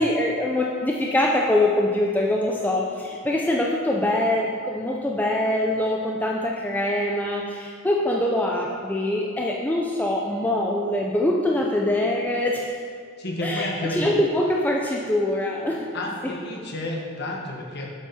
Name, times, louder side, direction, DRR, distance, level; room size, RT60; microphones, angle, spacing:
voice 1, 0.0-12.7 13.4-15.9 16.2-16.3, left 1 dB, 10° left, -2 dB, 0.4 m, -24 dB
voice 2, 13.2-14.1 15.9-17.9, left 1 dB, 50° left, 0 dB, 1.1 m, -30 dB
7.2 x 5.8 x 4.1 m, 2.1 s
head